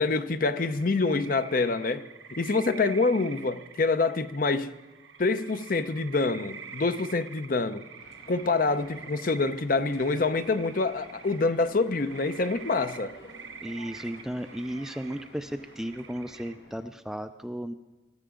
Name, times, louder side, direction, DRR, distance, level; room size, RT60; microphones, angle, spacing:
voice 1, 0.0-2.0 2.3-4.7 5.2-7.8 8.3-13.1, left 3 dB, 45° left, 11 dB, 0.6 m, -26 dB
sound 1, 0.6-16.5, right 6 dB, 90° right, 1.1 m, -46 dB
sound 2, 8.0-16.9, left 1 dB, 65° left, 2.0 m, -52 dB
voice 2, 13.6-17.7, equal, 5° right, 9 dB, 0.4 m, -35 dB
20.5 x 13.5 x 3.8 m, 1.2 s
head